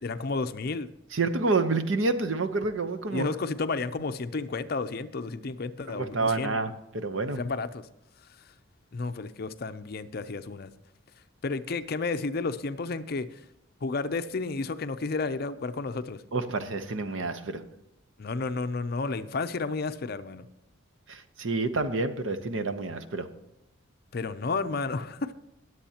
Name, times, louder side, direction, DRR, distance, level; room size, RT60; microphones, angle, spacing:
voice 1, 0.0-0.9 3.1-6.5 7.4-7.9 8.9-10.7 11.4-13.3 13.8-16.2 18.2-20.5 24.1-25.3, left 3 dB, 50° left, 12 dB, 0.5 m, -31 dB
voice 2, 1.1-3.3 5.9-7.4 16.3-17.6 21.1-23.3, right 3 dB, 70° right, 9 dB, 0.9 m, -28 dB
20.5 x 7.8 x 2.9 m, 0.90 s
head